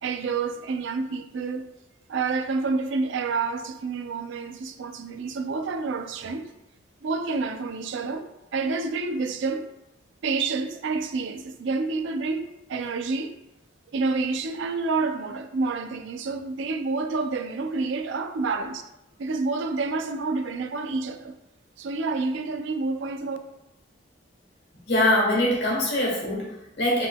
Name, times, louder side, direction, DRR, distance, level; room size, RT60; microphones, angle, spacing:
voice 1, 0.0-1.7 2.1-6.5 7.0-9.7 10.2-13.4 13.9-18.8 19.2-21.3 21.8-23.4, right 4 dB, 70° right, 0.4 m, -28 dB
voice 2, 24.9-27.1, left 1 dB, 60° left, 1.3 m, -23 dB
4.7 x 3.7 x 2.2 m
head